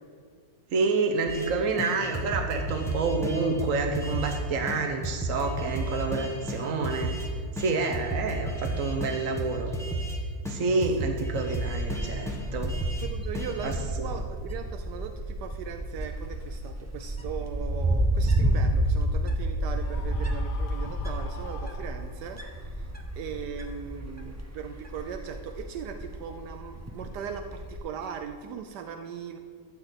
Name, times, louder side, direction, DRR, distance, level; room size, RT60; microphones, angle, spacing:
voice 1, 0.7-7.1 7.6-9.7 10.5-12.7 13.6-13.7, right 4 dB, 60° right, 4 dB, 1.1 m, -28 dB
sound 1, 1.3-1.5 1.8-4.4 4.7-4.8 5.0-7.3 7.6-10.2 10.4-13.1 13.3-13.8, right 1 dB, ahead, 1.1 m, -33 dB
voice 2, 10.7-11.2 13.0-22.9 23.2-29.4, right 7 dB, 80° right, 7 dB, 1.2 m, -39 dB
Wind, 11.5-27.8, right 1 dB, 15° right, 0.5 m, -31 dB
Screaming, 19.8-22.5, left 6 dB, 85° left, 1.6 m, -46 dB
13.0 x 4.5 x 8.0 m, 2.1 s
omnidirectional pair, 1.8 m